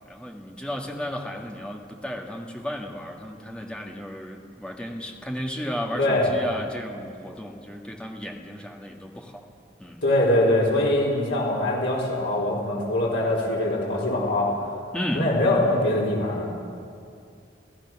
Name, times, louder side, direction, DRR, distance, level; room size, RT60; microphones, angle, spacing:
voice 1, 0.0-9.5 9.8-10.0 14.9-15.3, equal, 5° left, 1 dB, 1.8 m, -34 dB
voice 2, 5.9-6.3 10.0-14.6 15.1-16.5, left 1 dB, 80° left, -4 dB, 4.6 m, -23 dB
29.0 x 15.0 x 6.2 m, 2.4 s
head